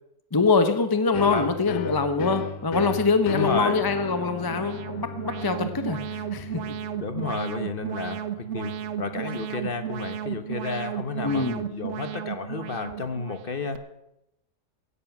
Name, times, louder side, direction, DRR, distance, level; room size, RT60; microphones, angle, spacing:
voice 1, 0.3-6.6 11.2-11.6, left 4 dB, 20° left, 9 dB, 0.6 m, -24 dB
sound 1, 1.1-8.6, left 6 dB, 80° left, 1.3 m, -36 dB
voice 2, 1.2-1.5 3.3-3.8 6.9-13.8, left 4 dB, 40° left, 9 dB, 1.1 m, -31 dB
Alarm, 3.9-13.8, right 10 dB, 55° right, 0.9 m, -34 dB
15.5 x 11.0 x 6.0 m, 0.86 s
omnidirectional pair, 1.6 m